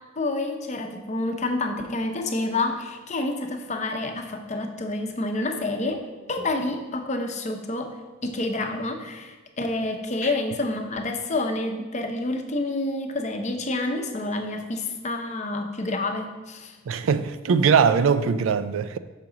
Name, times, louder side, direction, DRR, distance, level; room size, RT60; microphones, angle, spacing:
voice 1, 0.2-6.0 6.3-8.0 8.2-16.8, left 2 dB, 35° left, 0.7 m, -28 dB
voice 2, 16.9-19.0, right 6 dB, 80° right, 0.4 m, -21 dB
5.9 x 5.8 x 3.9 m
head